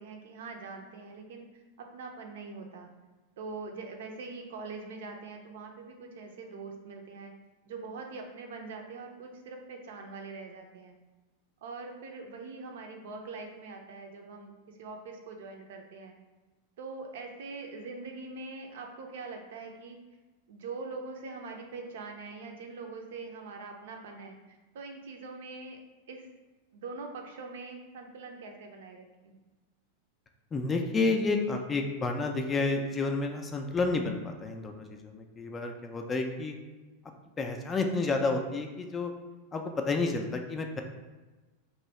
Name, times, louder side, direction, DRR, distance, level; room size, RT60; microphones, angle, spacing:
voice 1, 0.0-1.5 1.9-2.9 3.4-7.3 7.6-10.9 11.6-16.1 16.8-20.0 20.5-25.8 26.1-26.3 26.7-29.4, right 3 dB, 55° right, 3 dB, 0.5 m, -43 dB
voice 2, 30.5-36.5 37.4-39.1 39.5-40.8, left 3 dB, 20° left, 4 dB, 0.4 m, -30 dB
3.0 x 2.6 x 4.3 m, 1.2 s
figure-of-eight pair, 90°, 0 cm